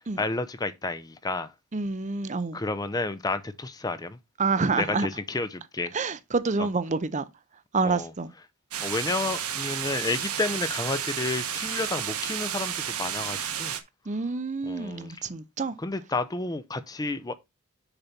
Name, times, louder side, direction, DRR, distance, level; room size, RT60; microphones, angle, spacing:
voice 1, 0.2-1.5 2.5-4.2 4.8-5.9 6.6-6.7 7.8-8.1 8.8-13.7 14.7-15.2 15.8-17.3, left 3 dB, 15° left, 0.5 m, -31 dB
voice 2, 1.7-2.6 4.4-5.1 5.9-7.2 7.7-8.3 14.1-15.7, right 4 dB, 30° right, 0.6 m, -27 dB
sound 1, 8.7-13.8, right 9 dB, 75° right, 1.3 m, -32 dB
6.8 x 4.1 x 5.8 m
head